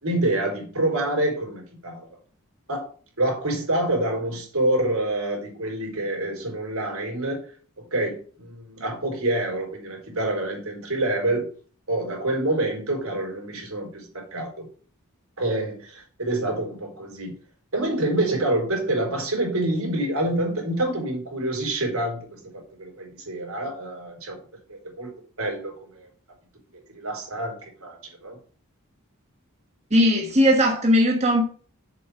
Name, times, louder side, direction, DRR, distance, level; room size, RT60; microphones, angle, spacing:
voice 1, 0.0-2.1 2.7-2.8 3.2-7.4 7.8-11.5 11.9-14.5 15.4-17.3 17.7-22.4 22.8-24.4 24.7-25.1 25.4-26.1 26.9-28.4, right 1 dB, 75° right, 4.3 m, -27 dB
voice 2, 29.9-31.4, equal, 30° right, 1.3 m, -18 dB
7.5 x 5.7 x 6.7 m
head